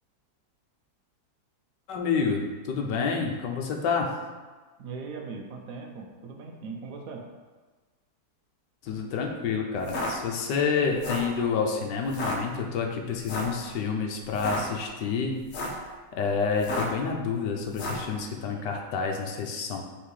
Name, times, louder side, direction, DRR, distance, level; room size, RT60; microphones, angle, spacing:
voice 1, 1.9-4.1 8.8-15.4 16.2-19.8, left 5 dB, 70° left, 2 dB, 1.4 m, -28 dB
voice 2, 4.8-7.2, right 4 dB, 60° right, 1 dB, 1.1 m, -39 dB
sound 1, 9.8-10.1 10.9-11.3 12.1-12.4 13.2-13.6 14.3-14.6 15.4-15.8 16.6-17.0 17.7-18.1, left 1 dB, 50° left, 1.1 m, -32 dB
5.7 x 3.6 x 4.9 m, 1.3 s
omnidirectional pair, 2.0 m